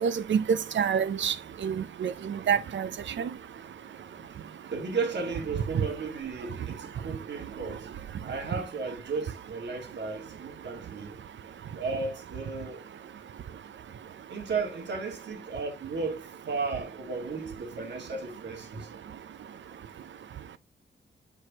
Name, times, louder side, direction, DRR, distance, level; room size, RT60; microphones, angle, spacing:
voice 1, 0.0-1.3 1.6-2.9 3.2-3.3, right 7 dB, 90° right, 0.6 m, -27 dB
voice 2, 4.7-7.9 8.2-11.2 11.7-12.8 14.3-18.9, right 4 dB, 70° right, 2.0 m, -34 dB
7.8 x 4.7 x 2.9 m
wide cardioid pair, 165°, 19 cm